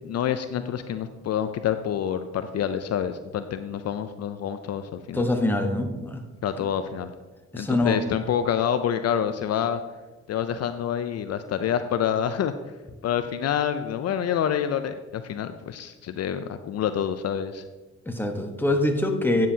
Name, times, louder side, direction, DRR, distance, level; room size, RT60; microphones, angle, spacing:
voice 1, 0.0-5.3 6.4-7.1 7.5-9.8 10.3-12.5 13.0-17.6, left 9 dB, 55° left, 9 dB, 0.5 m, -27 dB
voice 2, 5.1-6.2 7.5-8.0 18.1-19.5, left 1 dB, 5° left, 4 dB, 1.1 m, -24 dB
9.8 x 7.4 x 2.8 m, 1.2 s
cardioid pair, 90°, 30 cm